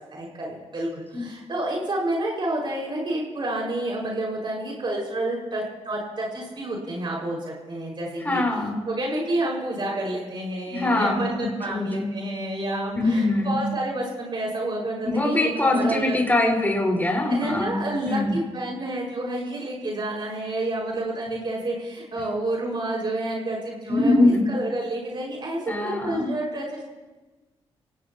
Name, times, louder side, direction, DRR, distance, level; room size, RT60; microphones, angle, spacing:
voice 1, 0.1-8.4 8.9-16.1 17.3-26.8, right 1 dB, 50° right, -2 dB, 5.5 m, -29 dB
voice 2, 8.2-8.8 10.7-12.1 12.9-13.6 15.0-18.4 23.9-24.5 25.7-26.3, left 2 dB, 15° left, -1 dB, 4.9 m, -23 dB
24.5 x 18.0 x 3.0 m, 1.2 s
cardioid pair, 65°, 11 cm